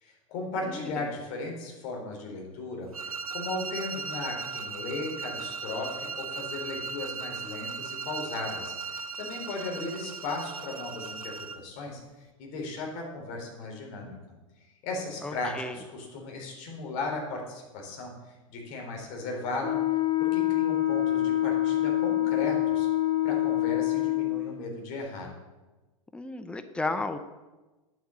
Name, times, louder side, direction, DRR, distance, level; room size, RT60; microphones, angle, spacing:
voice 1, 0.0-2.9 3.3-12.0 12.4-14.1 14.8-18.1 18.5-19.8 20.2-22.9 23.2-25.3, left 3 dB, 50° left, 1 dB, 3.7 m, -36 dB
voice 2, 0.6-1.1 15.2-15.8 26.1-27.2, left 2 dB, 5° left, 9 dB, 0.7 m, -34 dB
sound 1, 2.9-11.7, right 5 dB, 85° right, 0.6 m, -37 dB
Wind instrument woodwind instrument, 19.6-24.5, left 15 dB, 35° left, 1.7 m, -26 dB
9.2 x 8.0 x 7.3 m, 1.1 s
hypercardioid pair, 95°, 18 cm